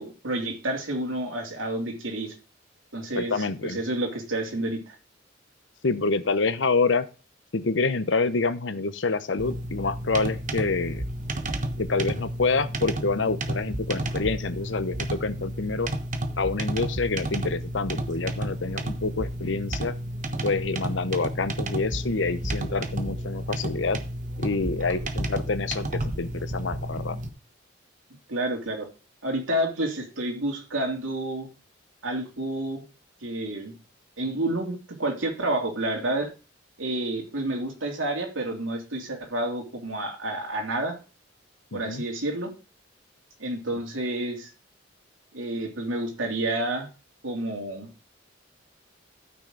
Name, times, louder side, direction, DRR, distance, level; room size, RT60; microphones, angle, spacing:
voice 1, 0.0-2.4 2.9-5.0 28.3-28.9 29.2-31.5 32.0-32.8 33.2-33.7 34.2-36.3 36.8-40.9 41.7-42.5 43.4-44.5 45.3-46.9 47.2-47.9, right 1 dB, 85° right, 1 dB, 3.0 m, -29 dB
voice 2, 3.1-3.8 5.8-7.1 7.5-11.0 11.8-15.9 16.4-19.9 20.4-24.0 24.4-27.2 41.7-42.0, left 3 dB, 65° left, 13 dB, 0.8 m, -27 dB
sound 1, 9.4-27.3, right 1 dB, 40° right, 1.2 m, -32 dB
13.5 x 6.1 x 3.9 m, 0.33 s
head